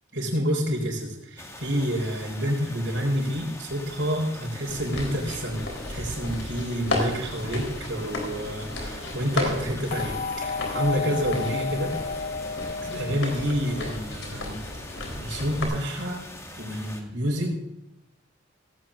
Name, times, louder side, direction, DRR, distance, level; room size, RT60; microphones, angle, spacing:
voice 1, 0.1-12.0 12.8-16.2 16.5-17.6, equal, 70° right, -6 dB, 4.3 m, -28 dB
sound 1, 1.4-17.0, left 1 dB, 15° left, 2.0 m, -43 dB
sound 2, 4.7-15.6, left 2 dB, 80° left, 3.9 m, -34 dB
sound 3, 9.9-14.1, left 4 dB, 45° left, 0.5 m, -32 dB
17.5 x 17.0 x 2.6 m, 0.84 s
head